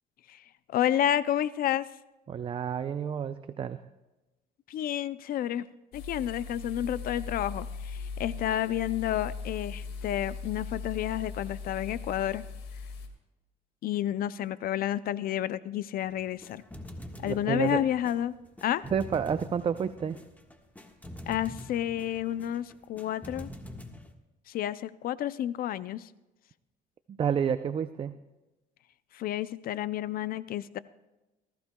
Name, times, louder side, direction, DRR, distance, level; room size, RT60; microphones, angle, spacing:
voice 1, 0.7-1.9 4.7-5.7 5.9-12.4 13.8-16.6 17.2-18.4 18.6-18.9 21.3-23.5 24.5-26.1 29.1-30.8, left 11 dB, 60° left, 16 dB, 0.4 m, -30 dB
voice 2, 2.3-3.8 17.3-17.8 18.9-20.2 27.1-28.2, right 7 dB, 30° right, 11 dB, 0.5 m, -30 dB
sound 1, 5.9-13.1, left 4 dB, 75° left, 2.0 m, -39 dB
sound 2, 16.0-24.1, left 1 dB, 10° left, 1.4 m, -45 dB
19.0 x 15.5 x 2.2 m, 1.1 s
cardioid pair, 110°, 17 cm